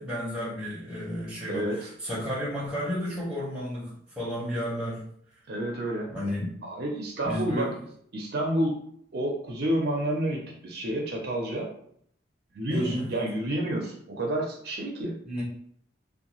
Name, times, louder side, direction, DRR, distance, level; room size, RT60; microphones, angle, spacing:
voice 1, 0.0-5.1 6.1-6.5 7.2-7.8 12.7-13.1 15.2-15.4, equal, 5° right, -6 dB, 0.9 m, -32 dB
voice 2, 1.5-1.9 5.5-6.1 6.6-7.7 8.1-8.8 9.1-11.7 12.5-15.2, right 1 dB, 55° right, 0 dB, 0.5 m, -29 dB
2.6 x 2.2 x 2.9 m, 0.64 s
head